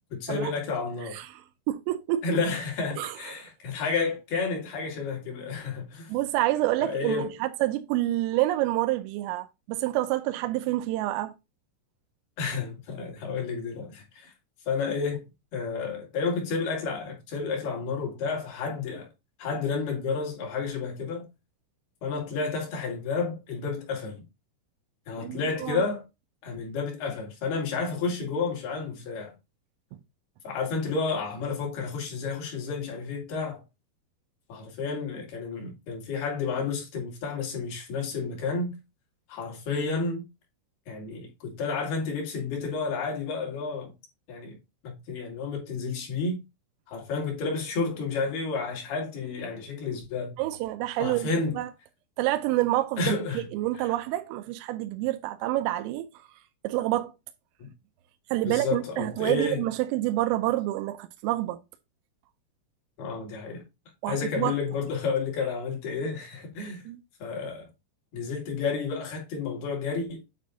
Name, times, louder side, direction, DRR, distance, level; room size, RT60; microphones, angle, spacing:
voice 1, 0.1-1.2 2.2-6.1 6.8-7.3 12.4-14.3 14.7-15.2 15.5-19.1 19.4-21.3 22.0-24.2 25.1-26.0 26.4-29.3 30.4-33.6 34.5-38.8 39.3-40.2 40.9-43.9 44.3-44.6 44.8-46.4 46.9-50.4 51.0-51.6 53.0-53.5 53.8-53.9 57.6-57.7 58.4-59.6 63.0-63.6 64.1-66.8 67.2-67.7 68.1-70.3, left 4 dB, 55° left, 3.7 m, -31 dB
voice 2, 1.1-2.2 3.0-3.1 6.1-11.3 25.2-25.8 50.4-51.3 51.6-51.7 52.2-56.2 56.6-57.1 58.3-61.6 64.0-64.5 66.9-67.0, right 16 dB, 85° right, 3.2 m, -28 dB
9.3 x 3.7 x 3.8 m
omnidirectional pair, 6.0 m